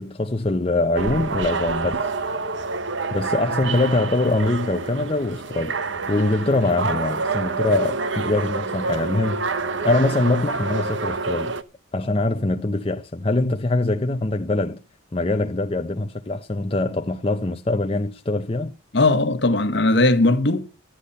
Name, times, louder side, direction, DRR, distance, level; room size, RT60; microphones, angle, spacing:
voice 1, 0.0-2.0 3.1-5.8 6.1-9.5 9.8-11.5 11.9-14.8 15.1-18.7, left 2 dB, 30° left, 0.7 m, -23 dB
sound 1, 0.9-11.6, right 4 dB, 75° right, 1.0 m, -27 dB
voice 2, 18.9-20.6, left 2 dB, 60° left, 1.3 m, -18 dB
13.0 x 10.5 x 5.4 m
head